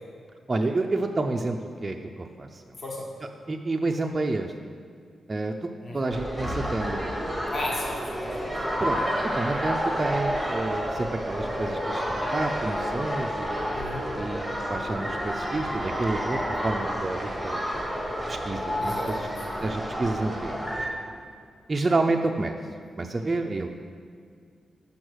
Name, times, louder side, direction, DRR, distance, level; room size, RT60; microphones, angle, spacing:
voice 1, 0.5-2.6 3.5-4.5 5.3-7.0 8.8-13.7 14.2-17.6 18.3-19.3 19.6-20.6 21.7-22.6 23.0-23.7, right 2 dB, 20° right, 2 dB, 0.3 m, -29 dB
sound 1, 6.1-20.9, equal, ahead, 0.9 m, -30 dB
voice 2, 7.5-8.2 8.6-8.7 13.7-14.1 18.8-19.6, left 1 dB, 35° left, -3 dB, 1.2 m, -35 dB
6.3 x 5.4 x 6.2 m, 2.1 s
wide cardioid pair, 165°, 0 cm